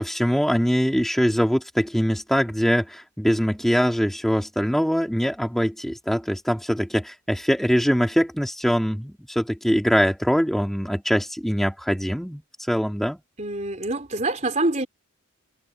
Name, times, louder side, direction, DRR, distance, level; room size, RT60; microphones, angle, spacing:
voice 1, 0.0-13.2, equal, ahead, 2.4 m, -23 dB
voice 2, 13.4-14.9, right 2 dB, 30° right, 4.0 m, -25 dB
head